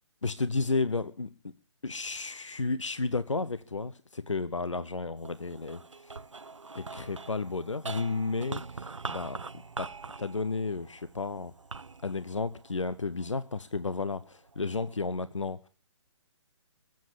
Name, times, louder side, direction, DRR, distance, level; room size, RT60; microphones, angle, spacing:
voice 1, 0.2-1.3 1.8-6.1 6.7-9.4 9.8-9.9 10.2-11.5 12.0-15.7, left 3 dB, 75° left, 14 dB, 0.8 m, -32 dB
sound 1, 5.2-13.6 14.2-15.0, right 4 dB, 75° right, 0.7 m, -43 dB
23.0 x 8.0 x 6.7 m, 0.40 s
figure-of-eight pair, 135°, 16 cm